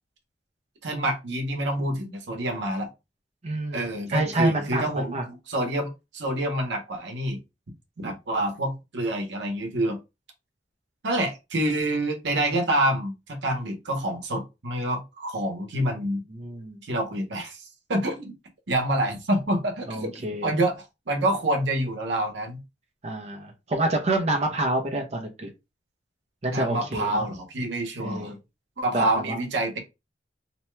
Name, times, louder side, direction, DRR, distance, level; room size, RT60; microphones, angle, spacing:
voice 1, 0.8-2.9 3.7-7.4 8.0-10.0 11.0-16.2 16.8-18.3 18.7-20.1 20.4-22.6 26.5-28.3 28.8-29.8, right 1 dB, 80° right, 0.9 m, -27 dB
voice 2, 3.4-5.2 16.3-16.8 19.9-20.5 23.0-25.5 26.4-27.3 28.0-28.4 28.9-29.4, right 2 dB, 40° right, 0.6 m, -28 dB
2.8 x 2.2 x 3.1 m
head